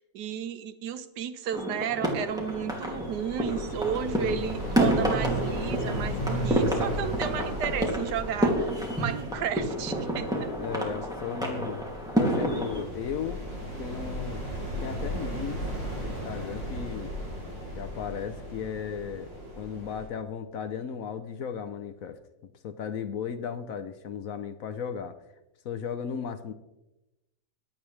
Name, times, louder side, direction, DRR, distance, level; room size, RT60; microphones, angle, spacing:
voice 1, 0.0-10.5, right 9 dB, 75° right, 10 dB, 1.4 m, -33 dB
sound 1, 1.5-12.8, right 1 dB, ahead, 2.3 m, -29 dB
sound 2, 2.3-20.1, equal, 45° right, 6.3 m, -37 dB
sound 3, 3.9-9.4 9.9-11.8, right 1 dB, 35° left, 5.4 m, -37 dB
voice 2, 10.6-11.8 12.2-13.4 13.8-14.4 14.8-15.6 16.0-17.1 17.8-25.2 25.6-26.5, left 7 dB, 60° left, 10 dB, 1.0 m, -35 dB
22.0 x 8.7 x 3.2 m, 0.98 s
omnidirectional pair, 1.9 m